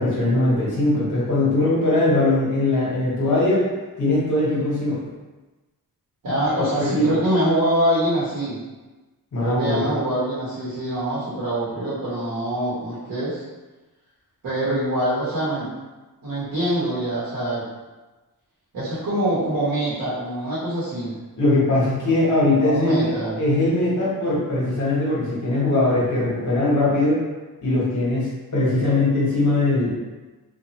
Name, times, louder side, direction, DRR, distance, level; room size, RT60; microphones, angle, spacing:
voice 1, 0.0-3.7 4.0-5.0 6.6-7.2 9.3-9.9 21.4-27.2 27.6-29.9, left 2 dB, 55° left, -7 dB, 1.2 m, -21 dB
voice 2, 6.2-8.6 9.4-13.4 14.4-15.7 16.2-17.6 18.7-21.2 22.6-23.4, right 1 dB, 65° right, -10 dB, 1.1 m, -24 dB
2.6 x 2.4 x 2.9 m, 1.2 s
wide cardioid pair, 145°, 36 cm